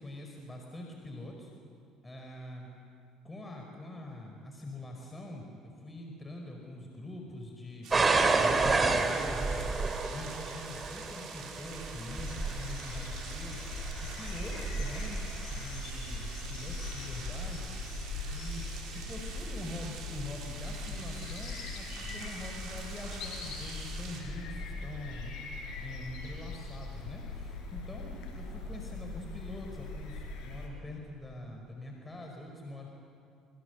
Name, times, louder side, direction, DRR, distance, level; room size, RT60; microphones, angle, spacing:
voice 1, 0.0-1.5 2.0-2.7 3.2-5.5 5.8-9.8 10.1-15.2 15.5-17.7 18.3-18.6 18.9-25.3 25.8-32.9, left 1 dB, 20° left, 1 dB, 5.0 m, -44 dB
sound 1, 7.8-24.2, right 5 dB, 65° right, 5.6 m, -47 dB
sound 2, 7.9-16.7 17.5-17.9 18.5-18.6, right 3 dB, 30° right, 3.1 m, -31 dB
sound 3, 12.2-30.7, left 3 dB, 70° left, 6.4 m, -40 dB
27.0 x 24.5 x 8.2 m, 2.4 s
hypercardioid pair, 70°, 0 cm